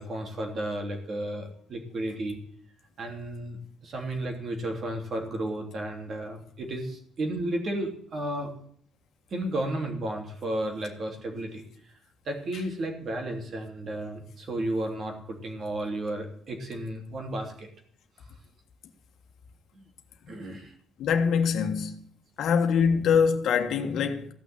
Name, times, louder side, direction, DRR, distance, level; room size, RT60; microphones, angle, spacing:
voice 1, 0.0-2.4 3.0-8.5 9.3-11.6 12.2-17.7 19.7-19.8 20.3-20.7, right 1 dB, 35° right, 3.1 m, -33 dB
voice 2, 21.0-22.0 22.4-24.3, left 6 dB, 60° left, 1.6 m, -24 dB
15.5 x 6.2 x 9.1 m
cardioid pair, 160°, 0 cm